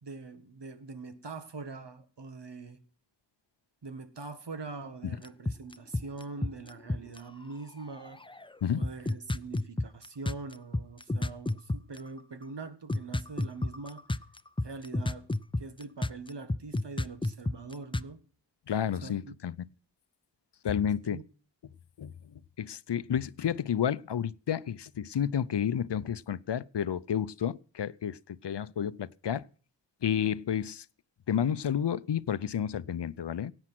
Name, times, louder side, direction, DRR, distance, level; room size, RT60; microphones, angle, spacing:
voice 1, 0.0-2.8 3.8-8.2 8.8-14.0 14.6-15.3 15.6-18.2 19.0-19.4 21.1-21.2, right 3 dB, 70° right, 1.7 m, -43 dB
sound 1, 5.2-7.2 7.8-8.5 8.8-12.0 12.9-18.0, left 2 dB, 10° left, 0.6 m, -30 dB
voice 2, 18.7-19.5 20.6-21.2 22.0-22.1 22.6-28.2 28.4-29.4 30.0-30.8 31.3-33.5, left 9 dB, 70° left, 0.7 m, -30 dB
17.0 x 8.9 x 6.0 m
wide cardioid pair, 55°, 43 cm